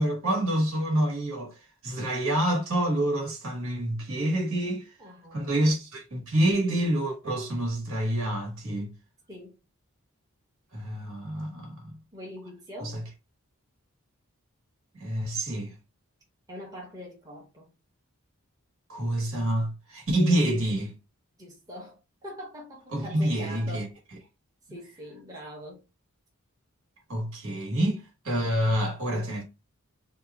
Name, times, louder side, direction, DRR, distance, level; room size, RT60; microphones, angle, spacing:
voice 1, 0.0-4.9 5.3-8.9 10.7-11.9 12.8-13.0 15.0-15.7 18.9-20.9 22.9-23.9 27.1-29.4, right 1 dB, 65° right, 1.3 m, -27 dB
voice 2, 5.0-5.6 9.3-9.5 12.1-13.0 16.5-17.7 21.4-23.8 24.7-25.8, equal, 15° right, 0.9 m, -43 dB
2.8 x 2.3 x 3.4 m
head